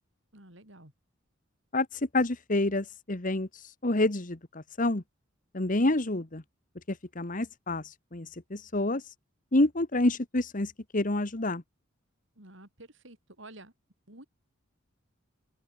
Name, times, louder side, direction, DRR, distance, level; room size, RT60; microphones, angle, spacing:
voice 1, 0.3-0.9 12.4-13.7 14.1-14.3, right 2 dB, 60° right, 6.2 m, -50 dB
voice 2, 1.7-5.0 5.5-6.4 6.9-9.0 9.5-11.6, left 2 dB, 40° left, 1.5 m, -28 dB
open air
head